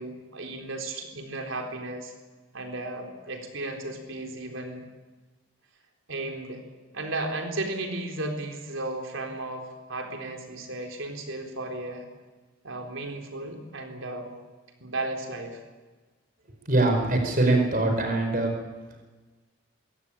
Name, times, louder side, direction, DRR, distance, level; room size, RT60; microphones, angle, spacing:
voice 1, 0.0-2.1 2.5-4.9 6.1-6.6 6.9-12.1 12.6-14.3 14.8-15.6, right 2 dB, 70° right, 3 dB, 4.0 m, -34 dB
voice 2, 16.6-18.5, right 2 dB, 40° right, 4 dB, 4.9 m, -23 dB
22.5 x 17.0 x 9.1 m, 1.3 s
head